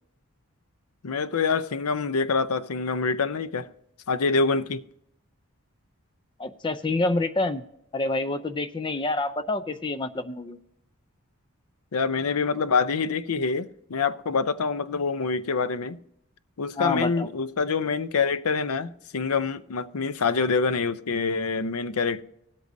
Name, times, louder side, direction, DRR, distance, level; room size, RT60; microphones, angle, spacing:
voice 1, 1.0-3.7 4.1-4.8 11.9-16.0 16.6-22.2, left 4 dB, 85° left, 0.6 m, -26 dB
voice 2, 6.4-7.6 7.9-10.6 16.8-17.3, left 2 dB, 20° left, 0.5 m, -27 dB
19.5 x 8.2 x 2.6 m
head